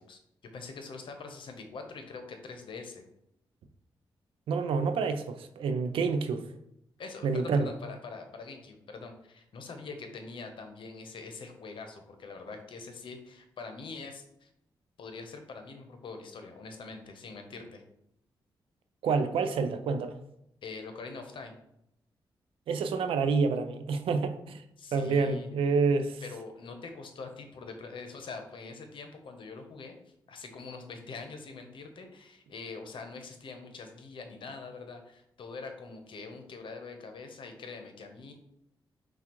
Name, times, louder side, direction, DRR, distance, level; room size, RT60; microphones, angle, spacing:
voice 1, 0.5-3.0 7.0-14.5 15.0-17.8 20.6-21.5 24.8-25.6 26.2-38.3, left 4 dB, 70° left, 0.8 m, -44 dB
voice 2, 4.5-6.5 7.2-7.6 19.0-20.2 22.7-24.6 24.9-26.2, right 4 dB, 80° right, 0.4 m, -28 dB
5.8 x 2.3 x 3.0 m
cardioid pair, 60°, 9 cm